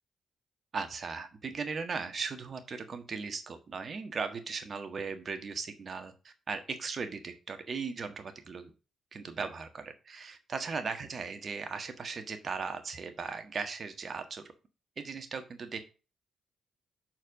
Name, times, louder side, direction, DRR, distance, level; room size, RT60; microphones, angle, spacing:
voice 1, 0.7-8.7 9.1-14.4 15.0-15.8, right 5 dB, 50° right, 8 dB, 1.5 m, -38 dB
6.6 x 4.6 x 6.6 m, 0.33 s
hypercardioid pair, 40°, 0 cm